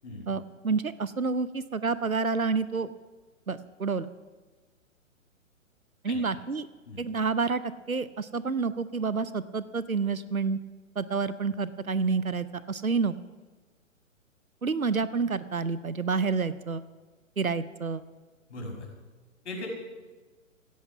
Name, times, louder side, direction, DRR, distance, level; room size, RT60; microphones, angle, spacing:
voice 1, 0.3-2.9 3.5-4.1 6.0-6.7 7.0-7.6 7.9-10.6 11.0-13.1 14.6-16.8 17.4-18.0, right 4 dB, 90° right, 15 dB, 0.8 m, -29 dB
voice 2, 18.5-18.9 19.4-19.7, left 2 dB, 55° left, 1 dB, 5.8 m, -38 dB
17.0 x 13.5 x 5.9 m, 1.3 s
figure-of-eight pair, 125°, 41 cm